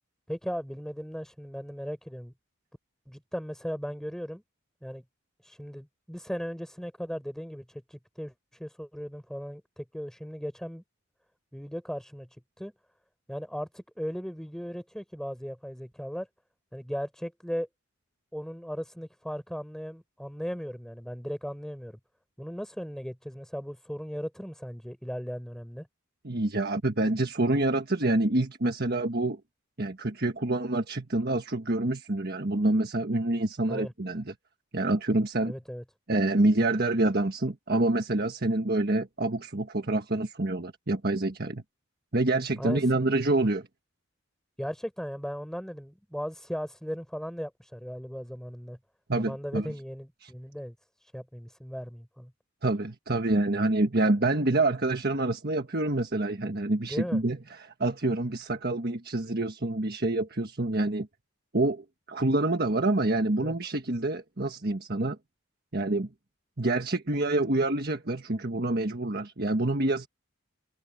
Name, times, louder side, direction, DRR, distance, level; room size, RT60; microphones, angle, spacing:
voice 1, 0.3-2.3 3.1-4.4 4.8-5.0 5.4-10.8 11.5-12.3 12.6-12.7 13.3-16.3 16.7-17.7 18.3-22.0 22.4-25.9 33.7-33.9 35.4-35.8 42.6-42.8 44.6-48.8 49.2-50.7 51.0-52.3 56.8-57.2 63.4-63.5, equal, ahead, 4.2 m, -37 dB
voice 2, 26.2-29.4 29.8-34.3 34.7-35.5 36.1-41.6 42.1-43.7 49.1-49.7 50.2-50.3 52.6-61.1 61.5-65.2 65.7-66.1 66.6-70.1, right 2 dB, 50° right, 1.5 m, -27 dB
head